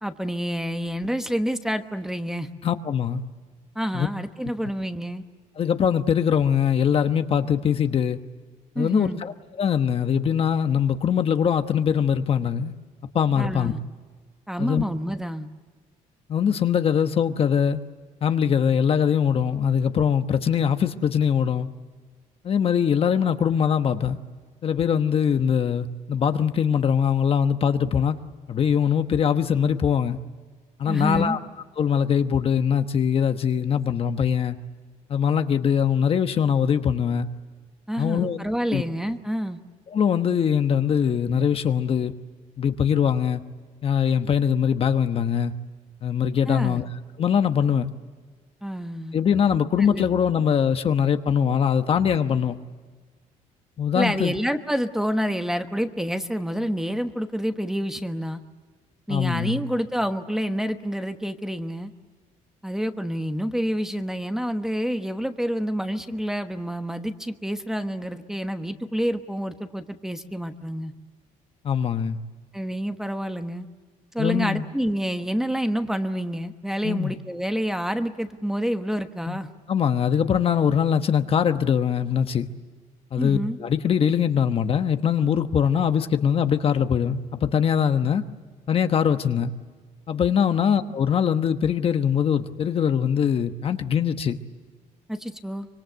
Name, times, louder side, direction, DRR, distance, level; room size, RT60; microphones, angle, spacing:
voice 1, 0.0-2.5 3.7-5.2 8.7-9.2 13.3-13.8 14.5-15.5 30.9-31.4 37.9-39.6 46.5-46.8 48.6-49.2 49.9-50.1 53.9-58.4 59.1-61.9 62.6-70.9 72.5-73.7 74.1-79.5 83.2-83.6 95.1-95.7, equal, 5° right, 1.1 m, -28 dB
voice 2, 2.6-3.2 3.9-4.1 5.6-8.2 8.8-12.7 13.1-13.7 14.6-14.8 16.3-17.8 18.2-21.7 22.4-24.2 24.6-28.2 28.5-30.2 30.8-31.4 31.8-34.6 35.1-37.3 38.0-38.4 38.7-38.8 39.9-42.1 42.6-43.4 43.8-45.5 46.0-46.9 47.2-47.9 49.1-52.6 53.8-54.3 59.1-59.6 71.6-72.2 74.2-74.6 76.8-77.1 79.3-79.4 79.7-82.5 83.1-88.2 88.7-89.5 90.1-94.4, left 8 dB, 45° left, 1.1 m, -22 dB
25.0 x 23.5 x 8.0 m
cardioid pair, 120°, 14 cm